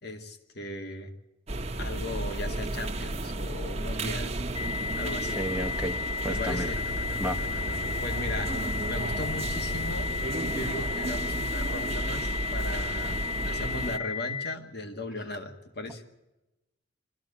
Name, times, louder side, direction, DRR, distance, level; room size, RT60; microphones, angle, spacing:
voice 1, 0.0-1.1 1.8-4.4 4.9-5.4 6.3-6.8 8.0-8.6 8.9-10.2 10.4-16.0, left 1 dB, 55° left, 6 dB, 1.9 m, -37 dB
sound 1, 1.5-14.0, right 2 dB, 35° right, 1.1 m, -33 dB
sound 2, 4.5-14.5, left 6 dB, 25° left, 0.8 m, -34 dB
voice 2, 5.4-6.0 6.2-6.7 7.2-7.4, equal, 5° right, 1 dB, 0.9 m, -31 dB
sound 3, 6.3-11.5 11.8-11.9, left 2 dB, 75° left, 1.1 m, -42 dB
24.0 x 14.0 x 8.6 m, 1.0 s
head